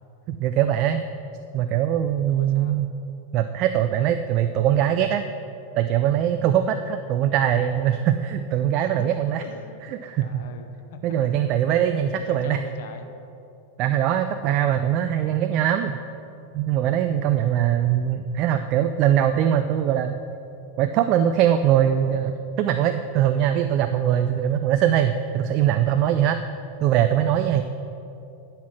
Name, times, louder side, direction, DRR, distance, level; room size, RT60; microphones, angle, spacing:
voice 1, 0.3-1.0 1.5-2.9 3.3-5.2 5.8-9.4 9.8-10.5 11.0-12.6 13.8-16.0 16.5-20.2 20.8-26.4 26.8-27.6, right 10 dB, 40° right, 8 dB, 0.4 m, -22 dB
voice 2, 2.3-2.8 8.8-9.1 9.4-9.8 10.2-11.3 12.0-13.1, left 6 dB, 55° left, 7 dB, 0.8 m, -42 dB
11.0 x 5.8 x 6.0 m, 2.8 s
figure-of-eight pair, 90°, 0 cm